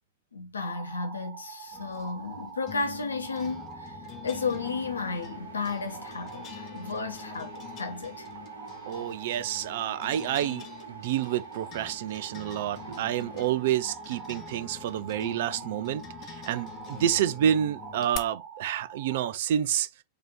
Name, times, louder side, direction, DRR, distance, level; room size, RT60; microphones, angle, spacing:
voice 1, 0.3-8.3, left 4 dB, 75° left, 1.0 m, -33 dB
sound 1, 0.6-19.3, right 6 dB, 35° right, 1.6 m, -45 dB
sound 2, 1.7-18.2, left 12 dB, 35° left, 0.7 m, -46 dB
sound 3, 4.2-13.4, right 2 dB, 75° right, 1.5 m, -51 dB
voice 2, 8.9-16.0 16.3-19.9, right 10 dB, 55° right, 0.4 m, -29 dB
4.9 x 2.9 x 3.7 m
figure-of-eight pair, 90°, 0 cm